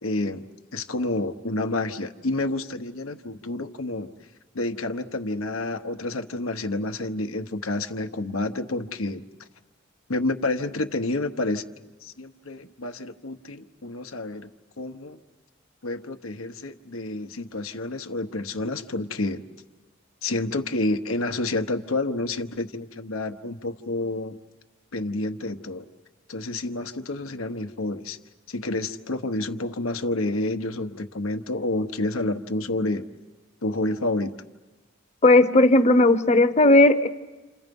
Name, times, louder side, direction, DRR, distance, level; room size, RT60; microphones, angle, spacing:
voice 1, 0.0-4.1 4.5-9.3 10.1-11.6 12.0-14.5 14.8-15.2 15.8-19.4 20.2-24.4 24.9-25.8 26.3-28.2 28.5-33.1 33.6-34.4, left 2 dB, 90° left, 8 dB, 1.1 m, -29 dB
voice 2, 35.2-37.1, left 2 dB, 35° left, 9 dB, 0.8 m, -16 dB
28.5 x 28.0 x 5.4 m, 1.2 s
head